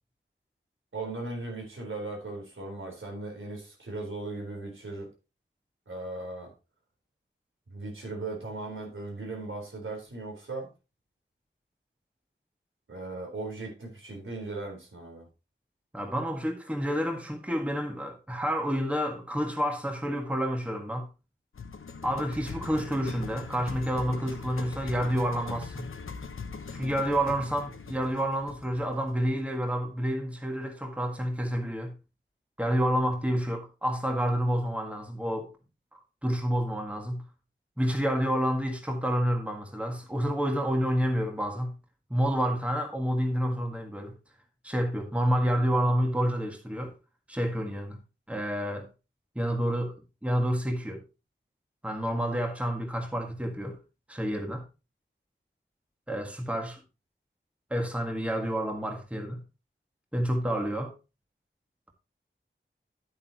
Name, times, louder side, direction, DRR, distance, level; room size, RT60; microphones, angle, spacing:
voice 1, 0.9-5.1 5.9-6.5 7.7-10.7 12.9-15.3, right 2 dB, 75° right, 4.0 m, -38 dB
voice 2, 15.9-21.1 22.0-25.9 26.7-31.9 32.6-35.5 35.9-37.3 37.8-41.8 42.1-44.1 44.6-46.9 47.3-48.0 48.3-48.9 49.3-50.0 50.2-51.0 51.8-53.8 54.1-54.6 56.1-56.8 57.7-59.4 60.1-60.9, equal, 5° right, 1.7 m, -29 dB
sound 1, 21.5-29.7, left 5 dB, 90° left, 1.0 m, -41 dB
10.0 x 8.7 x 2.9 m
wide cardioid pair, 80°, 20 cm